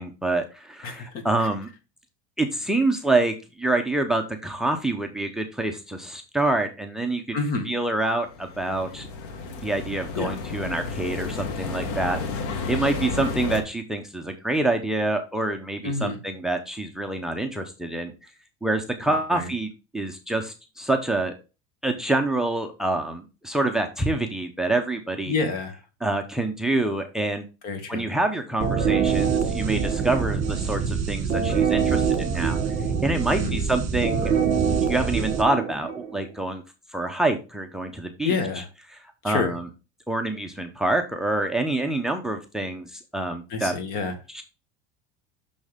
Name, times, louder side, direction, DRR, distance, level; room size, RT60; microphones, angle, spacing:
voice 1, 0.0-1.7 2.4-7.4 7.6-9.1 9.6-12.2 12.7-18.1 18.6-21.3 21.8-25.3 26.0-27.4 27.9-32.6 33.0-34.3 34.8-36.6 36.9-38.3 38.9-39.7 40.1-43.8 44.3-44.4, right 2 dB, 5° right, 7 dB, 0.7 m, -26 dB
voice 2, 0.8-1.2 7.3-7.7 10.1-10.3 15.8-16.2 19.3-19.5 25.3-25.8 27.6-28.0 33.3-33.6 38.2-38.7 39.3-39.5 43.5-44.1, left 4 dB, 55° left, 7 dB, 1.9 m, -28 dB
sound 1, 8.3-13.6, left 4 dB, 80° left, 1.6 m, -32 dB
sound 2, 28.6-36.2, right 7 dB, 40° right, 1.8 m, -24 dB
6.3 x 6.1 x 3.4 m, 0.29 s
cardioid pair, 150°, 19 cm